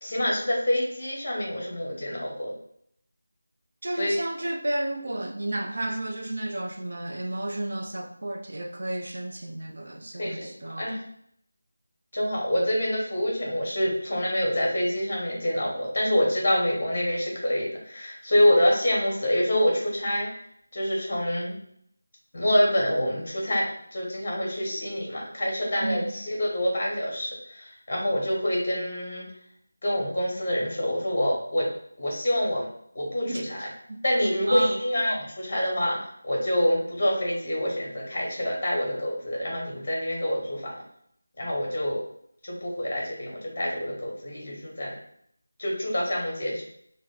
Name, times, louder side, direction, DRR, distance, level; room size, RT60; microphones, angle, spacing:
voice 1, 0.0-2.5 4.0-4.1 10.2-11.0 12.1-20.3 20.7-21.6 22.3-23.7 23.9-29.3 29.8-31.7 32.0-32.7 32.9-33.7 34.0-40.8 41.4-42.0 42.4-44.9 45.6-46.6, left 1 dB, 40° left, 1.1 m, -26 dB
voice 2, 3.8-10.9 25.8-26.2 33.3-34.0 34.5-34.8, right 1 dB, 60° right, 0.5 m, -32 dB
2.9 x 2.1 x 3.8 m
figure-of-eight pair, 165°, 0 cm